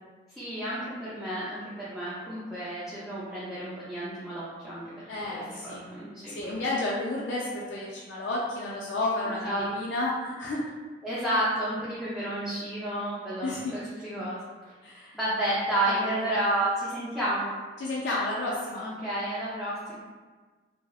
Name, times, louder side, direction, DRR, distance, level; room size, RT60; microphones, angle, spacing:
voice 1, 0.3-4.8 5.3-6.4 9.2-9.6 11.0-14.4 15.1-17.5 18.8-19.9, right 1 dB, ahead, -11 dB, 0.4 m, -31 dB
voice 2, 5.1-5.8 6.3-10.6 13.4-13.8 14.8-15.2 15.8-16.2 17.8-18.8, left 2 dB, 85° left, -4 dB, 0.3 m, -31 dB
2.7 x 2.0 x 2.2 m, 1.4 s
head